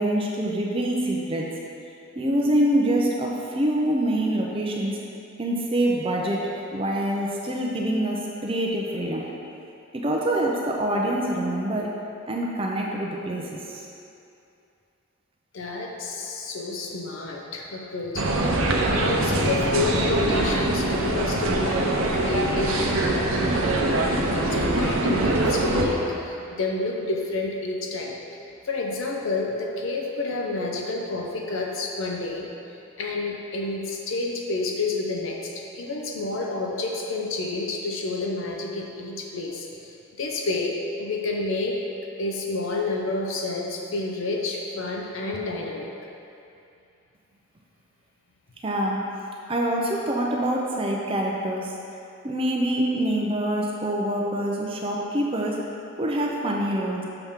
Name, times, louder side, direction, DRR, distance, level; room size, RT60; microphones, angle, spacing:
voice 1, 0.0-1.5 2.2-5.0 5.4-6.4 6.7-9.3 9.9-11.9 12.3-13.9 48.6-49.0 49.5-51.7 52.2-55.6 56.0-57.0, right 1 dB, 25° right, -1 dB, 0.5 m, -25 dB
voice 2, 15.5-23.4 24.0-28.2 28.6-32.5 33.0-41.8 42.2-45.9, left 2 dB, 65° left, 0 dB, 0.6 m, -29 dB
sound 1, 18.2-25.9, right 2 dB, 70° right, 0.7 m, -23 dB
6.8 x 5.9 x 3.6 m, 2.7 s
head